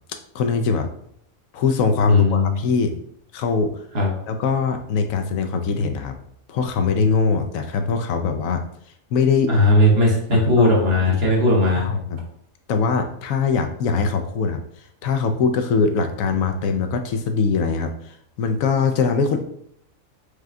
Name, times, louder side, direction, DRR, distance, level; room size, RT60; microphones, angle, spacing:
voice 1, 0.3-0.9 1.5-2.9 3.3-3.8 4.3-6.2 6.5-8.6 9.1-9.5 10.3-10.7 11.1-11.2 11.8-12.2 12.7-19.4, left 5 dB, 80° left, 6 dB, 1.0 m, -22 dB
voice 2, 2.0-2.6 3.9-4.1 9.5-11.9, left 1 dB, 50° right, -2 dB, 1.3 m, -17 dB
4.9 x 2.2 x 3.6 m, 0.68 s
omnidirectional pair, 1.4 m